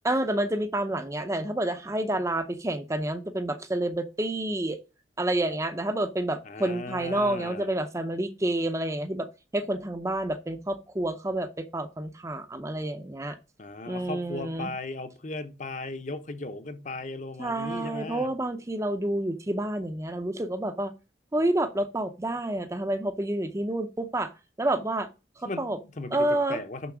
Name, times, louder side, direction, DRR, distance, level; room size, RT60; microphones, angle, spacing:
voice 1, 0.0-4.8 5.2-9.3 9.5-13.4 13.9-14.7 17.4-20.9 21.3-24.3 24.6-25.1 25.4-25.8 26.1-26.6, right 1 dB, 15° right, 0.6 m, -29 dB
voice 2, 6.4-7.7 13.6-18.3 25.4-26.9, left 2 dB, 40° left, 0.9 m, -37 dB
7.0 x 5.8 x 5.9 m
head